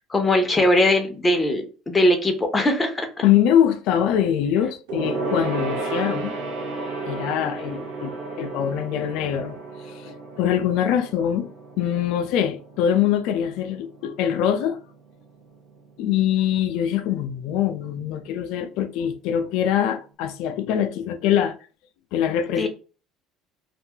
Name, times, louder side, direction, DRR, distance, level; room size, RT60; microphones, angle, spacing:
voice 1, 0.1-3.1 22.6-22.7, left 1 dB, 15° left, 0.7 m, -20 dB
voice 2, 3.2-6.4 7.0-8.1 8.4-9.6 10.0-11.5 11.8-14.8 16.0-21.5 22.1-22.7, left 10 dB, 70° left, 0.4 m, -23 dB
Gong, 4.9-14.7 15.0-15.2 15.5-15.6, right 3 dB, 85° right, 0.8 m, -33 dB
2.6 x 2.3 x 2.8 m
supercardioid pair, 115°, 0 cm